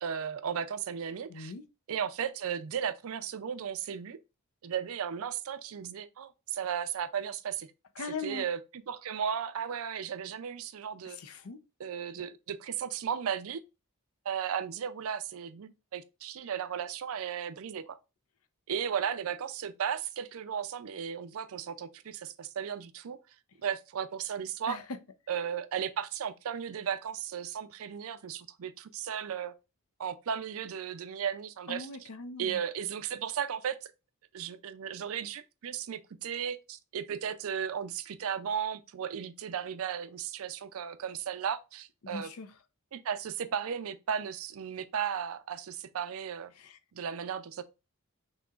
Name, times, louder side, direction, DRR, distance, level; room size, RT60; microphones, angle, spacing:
voice 1, 0.0-1.5 1.9-4.2 4.6-7.7 8.2-11.2 11.8-13.6 14.3-18.0 18.7-23.2 23.6-24.8 25.3-29.5 30.0-32.1 32.4-33.9 34.3-42.3 42.9-46.5 46.9-47.6, right 8 dB, 70° right, 0.4 m, -35 dB
voice 2, 1.3-1.6 8.0-8.5 11.0-11.6 24.7-24.8 31.7-32.6 42.1-42.5 46.6-46.8, left 3 dB, 70° left, 0.6 m, -40 dB
6.0 x 2.9 x 2.4 m
head